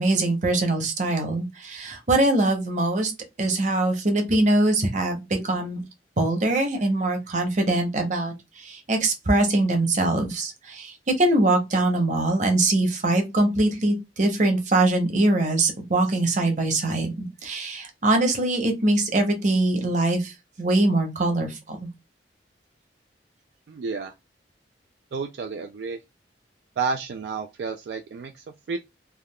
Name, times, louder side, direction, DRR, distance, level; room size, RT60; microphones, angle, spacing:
voice 1, 0.0-3.1 3.4-5.8 6.2-20.3 20.6-21.8, right 2 dB, 40° right, 0.8 m, -23 dB
voice 2, 23.7-24.1 25.1-26.0 26.8-28.8, right 5 dB, 65° right, 0.3 m, -31 dB
3.4 x 2.3 x 2.2 m
head